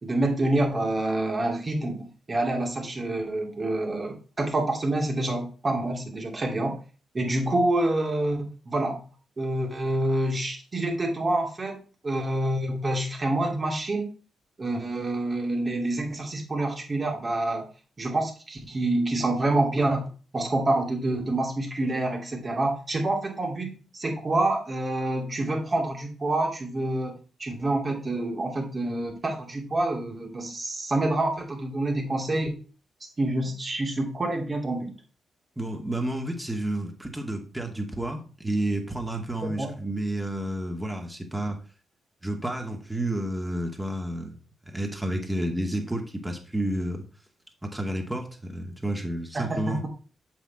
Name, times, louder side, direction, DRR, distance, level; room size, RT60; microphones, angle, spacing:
voice 1, 0.0-6.8 7.1-9.0 9.4-14.1 14.6-17.7 18.0-27.1 27.4-32.5 33.2-34.9 39.4-39.7 49.3-49.9, right 2 dB, 40° right, 1 dB, 2.8 m, -27 dB
voice 2, 35.6-41.6 42.2-44.4 44.7-47.0 47.6-49.8, right 1 dB, 10° right, 2 dB, 2.4 m, -30 dB
7.4 x 6.0 x 4.4 m, 0.37 s
hypercardioid pair, 40°, 0 cm